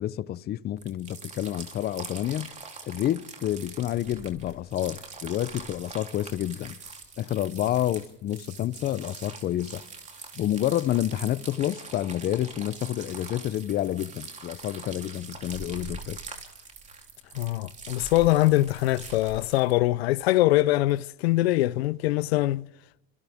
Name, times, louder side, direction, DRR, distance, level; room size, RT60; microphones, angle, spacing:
voice 1, 0.0-2.5 2.9-6.8 7.2-9.8 10.4-16.2, left 12 dB, 30° left, 0.7 m, -29 dB
sound 1, 0.8-19.8, right 4 dB, 25° right, 3.4 m, -43 dB
voice 2, 17.4-22.7, left 17 dB, 85° left, 0.7 m, -23 dB
29.0 x 25.5 x 3.6 m
supercardioid pair, 120°, 30 cm